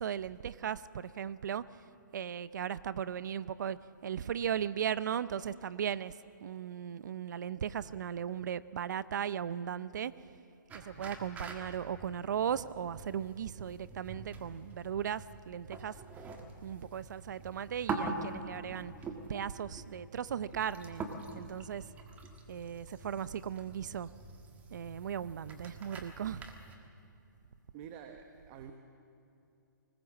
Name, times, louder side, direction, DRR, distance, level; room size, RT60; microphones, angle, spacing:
voice 1, 0.0-1.6 2.1-6.1 6.4-10.1 10.7-16.0 16.6-18.9 19.3-21.0 21.4-21.9 22.5-24.1 24.7-26.5, right 8 dB, 65° right, 17 dB, 0.7 m, -37 dB
sound 1, 10.7-26.8, right 3 dB, 15° right, 1.6 m, -45 dB
voice 2, 27.7-28.7, right 8 dB, 30° right, 6 dB, 1.2 m, -48 dB
20.5 x 19.5 x 7.4 m, 2.7 s
hypercardioid pair, 150°, 11 cm